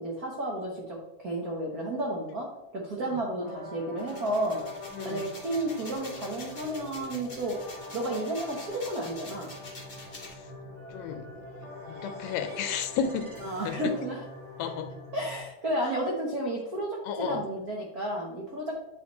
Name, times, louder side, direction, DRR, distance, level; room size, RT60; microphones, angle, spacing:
voice 1, 0.0-2.5 2.7-4.6 5.0-7.5 7.9-9.5 13.4-14.2 15.1-18.8, right 1 dB, 90° right, -3 dB, 0.8 m, -32 dB
sound 1, 3.4-15.4, left 2 dB, 25° right, 2.0 m, -44 dB
sound 2, 4.0-10.3, left 2 dB, 25° left, 1.1 m, -46 dB
voice 2, 10.9-11.3 12.0-13.3 13.6-13.8 14.6-14.9 17.1-17.4, left 7 dB, 75° left, 8 dB, 1.8 m, -32 dB
sound 3, 11.3-14.3, right 1 dB, 40° right, 0.9 m, -49 dB
9.7 x 5.3 x 3.1 m, 0.94 s
omnidirectional pair, 3.4 m